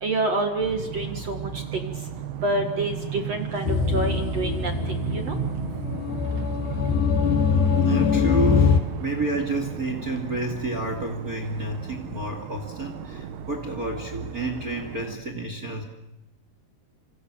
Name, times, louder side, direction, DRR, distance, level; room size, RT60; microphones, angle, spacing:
voice 1, 0.0-1.5 1.8-1.9 2.4-4.7 5.1-5.3, right 2 dB, 50° right, 5 dB, 2.3 m, -27 dB
sound 1, 0.6-15.2, right 8 dB, 75° right, 3.7 m, -35 dB
sound 2, 3.7-8.8, left 6 dB, 85° left, 4.2 m, -23 dB
voice 2, 7.8-15.8, right 2 dB, 25° right, 5 dB, 2.4 m, -30 dB
29.0 x 27.0 x 7.0 m, 0.82 s
omnidirectional pair, 4.8 m